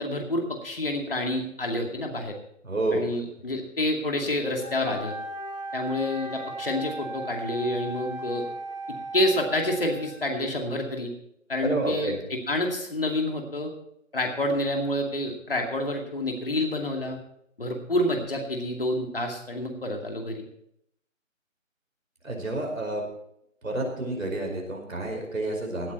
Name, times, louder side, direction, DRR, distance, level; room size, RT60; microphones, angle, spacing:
voice 1, 0.0-2.3 2.9-5.1 5.7-8.4 9.1-11.1 11.5-13.7 14.1-17.2 17.6-20.4, left 1 dB, 45° left, 2 dB, 2.4 m, -28 dB
voice 2, 2.6-3.0 11.6-12.2 22.2-23.0 23.6-25.9, right 2 dB, 85° right, 2 dB, 5.1 m, -29 dB
Wind instrument woodwind instrument, 4.5-10.5, right 1 dB, 5° right, 3.1 m, -37 dB
16.5 x 9.2 x 4.5 m, 0.74 s
figure-of-eight pair, 180°, 39 cm